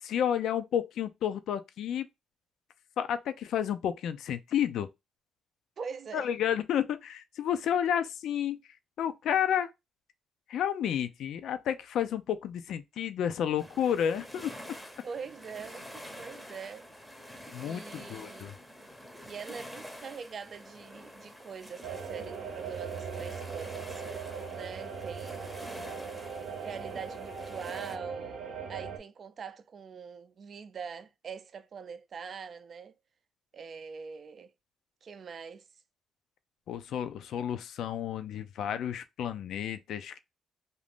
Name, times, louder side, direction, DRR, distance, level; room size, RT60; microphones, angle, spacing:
voice 1, 0.0-2.1 3.0-4.9 6.1-8.6 9.0-9.7 10.5-14.5 17.5-18.5 36.7-40.2, left 9 dB, 75° left, 0.4 m, -31 dB
voice 2, 5.8-6.3 15.0-15.9 16.2-16.9 17.6-18.5 19.2-24.0 24.5-25.8 26.6-32.9 33.5-34.5 35.0-35.7, right 6 dB, 50° right, 0.4 m, -43 dB
sound 1, 13.6-28.0, equal, ahead, 0.7 m, -48 dB
sound 2, 21.8-29.0, right 6 dB, 75° right, 0.7 m, -39 dB
2.5 x 2.5 x 3.4 m
cardioid pair, 90°, 0 cm